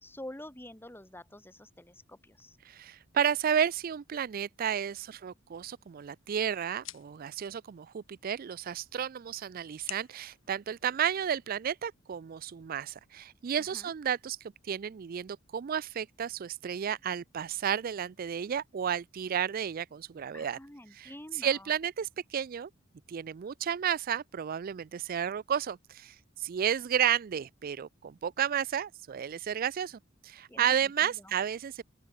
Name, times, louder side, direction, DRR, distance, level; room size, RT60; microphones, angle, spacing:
voice 1, 0.0-2.6 13.6-13.9 20.3-21.7 30.5-31.1, left 1 dB, 10° left, 3.3 m, -47 dB
voice 2, 2.6-20.6 20.9-22.7 23.1-31.8, right 8 dB, 45° right, 0.4 m, -32 dB
sound 1, 5.6-11.6, left 13 dB, 75° left, 3.0 m, -51 dB
open air
head